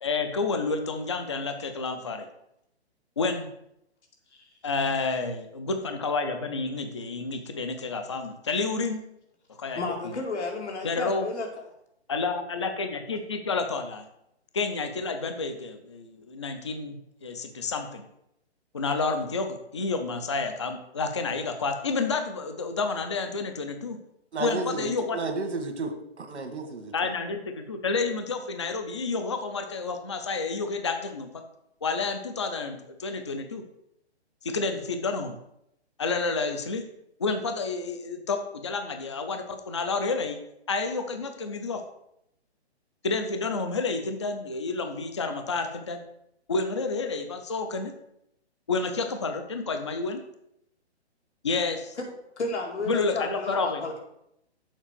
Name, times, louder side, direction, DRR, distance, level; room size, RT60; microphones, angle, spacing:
voice 1, 0.0-2.3 3.2-3.5 4.6-9.0 9.6-10.2 10.8-11.3 12.1-14.1 14.5-18.1 18.7-24.0 24.4-25.2 26.9-31.4 31.8-33.6 34.4-35.4 36.0-36.9 37.2-40.4 40.7-41.8 43.0-46.0 46.5-47.9 48.7-50.2 51.4-52.0 52.9-53.8, left 4 dB, 25° left, 0.5 m, -30 dB
voice 2, 9.8-11.5 52.0-52.1 52.4-54.0, left 3 dB, 85° left, 2.7 m, -32 dB
voice 3, 24.3-25.9 26.2-26.9, right 3 dB, 80° right, 1.8 m, -32 dB
7.3 x 4.9 x 6.7 m
hypercardioid pair, 175°, 33 cm